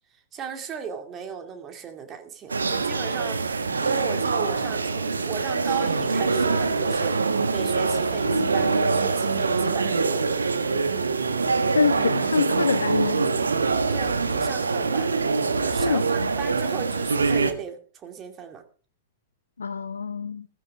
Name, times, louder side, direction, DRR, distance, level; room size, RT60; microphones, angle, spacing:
voice 1, 0.3-10.0 13.9-15.2 15.5-18.6, right 7 dB, 25° right, 6 dB, 2.4 m, -36 dB
sound 1, 2.5-17.5, right 4 dB, 75° right, 1.5 m, -24 dB
voice 2, 11.7-13.3 15.8-16.0 19.6-20.5, left 5 dB, 75° left, 12 dB, 0.7 m, -25 dB
15.5 x 15.0 x 3.6 m, 0.39 s
figure-of-eight pair, 100°, 0 cm